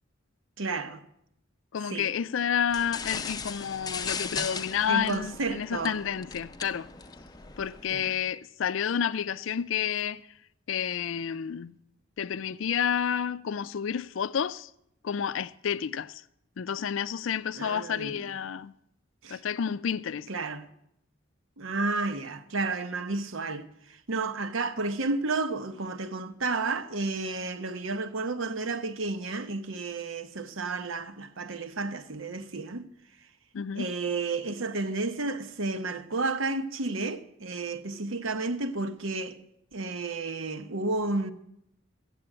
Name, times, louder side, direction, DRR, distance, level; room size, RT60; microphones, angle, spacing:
voice 1, 0.6-1.0 1.9-2.1 4.9-6.0 7.9-8.2 17.5-18.2 19.2-19.4 20.3-20.7 21.6-32.8 33.7-39.4 39.7-41.3, right 3 dB, 80° right, 1.0 m, -32 dB
voice 2, 1.7-6.9 7.6-10.2 10.7-11.8 12.2-14.7 15.0-16.2 16.6-18.7 19.3-20.3 33.5-33.9, left 8 dB, 75° left, 0.4 m, -30 dB
sound 1, 2.7-8.0, left 5 dB, 20° left, 0.5 m, -38 dB
15.0 x 7.7 x 8.8 m
head